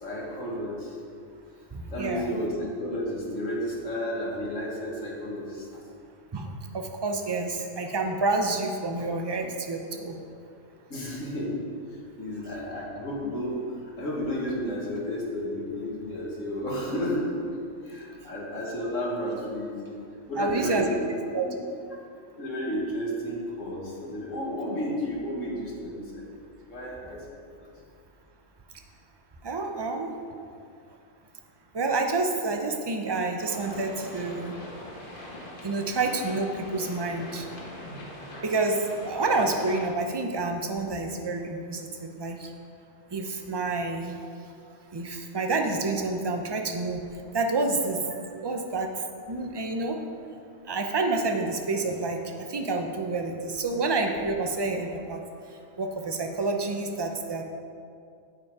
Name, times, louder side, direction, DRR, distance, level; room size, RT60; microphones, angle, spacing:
voice 1, 0.0-0.9 1.9-5.7 10.9-11.7 12.2-13.7 14.0-17.4 17.9-19.9 20.3-21.1 21.4-21.6 22.3-26.2 26.7-27.2 27.6-27.7, equal, 85° left, -4 dB, 2.2 m, -32 dB
voice 2, 1.7-2.3 6.3-6.5 6.7-10.2 20.4-20.8 21.3-21.5 29.4-30.1 31.7-34.6 35.6-37.5 38.4-42.5 43.1-44.2 44.9-47.0 47.3-48.0 48.4-48.9 49.3-50.0 50.7-52.2 52.5-55.2 55.8-57.4, right 3 dB, 25° right, 4 dB, 0.6 m, -28 dB
sound 1, 33.4-39.9, equal, 45° left, 1.5 m, -42 dB
8.9 x 8.2 x 4.8 m, 2.4 s
omnidirectional pair, 1.3 m